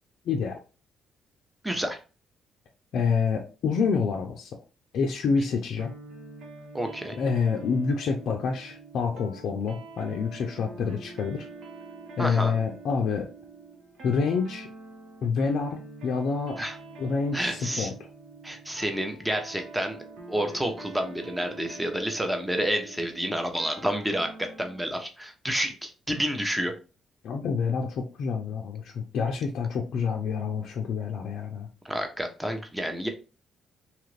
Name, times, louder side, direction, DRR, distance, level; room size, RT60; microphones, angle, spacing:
voice 1, 0.3-0.6 2.9-4.6 4.9-5.9 7.2-11.5 12.2-13.3 14.0-14.7 15.2-16.6 17.0-17.9 27.2-31.7, left 5 dB, 70° left, 1 dB, 0.4 m, -27 dB
voice 2, 1.6-2.0 6.7-7.2 12.2-12.5 16.6-16.8 17.3-17.9 18.4-20.0 20.3-26.7 31.8-33.1, equal, 5° right, 5 dB, 0.7 m, -29 dB
sound 1, 5.8-24.9, right 3 dB, 80° right, 0.9 m, -45 dB
2.9 x 2.5 x 3.2 m, 0.33 s
cardioid pair, 90°, 0 cm